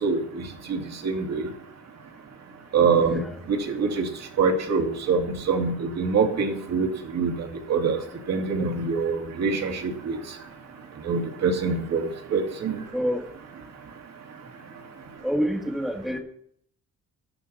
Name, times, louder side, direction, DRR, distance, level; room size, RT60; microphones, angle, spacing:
voice 1, 0.0-1.5 2.7-4.1 4.4-8.0 8.3-10.2 11.0-12.8, right 5 dB, 55° right, 3 dB, 2.3 m, -25 dB
voice 2, 3.0-3.4 12.9-13.3 15.2-16.2, equal, ahead, 3 dB, 1.7 m, -27 dB
13.0 x 11.5 x 4.2 m, 0.66 s
cardioid pair, 140°, 32 cm